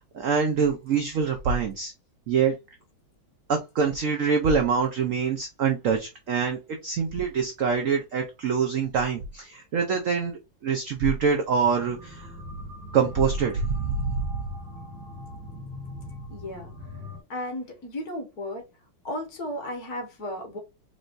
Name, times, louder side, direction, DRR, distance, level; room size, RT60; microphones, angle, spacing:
voice 1, 0.0-1.9 2.3-2.5 3.5-12.3 12.9-14.5, right 6 dB, 80° right, 0.7 m, -25 dB
sound 1, 11.6-17.2, left 1 dB, 40° right, 1.6 m, -40 dB
voice 2, 16.3-16.7 17.3-18.7 19.0-20.6, left 1 dB, 55° left, 1.6 m, -34 dB
4.1 x 3.3 x 2.5 m
omnidirectional pair, 2.2 m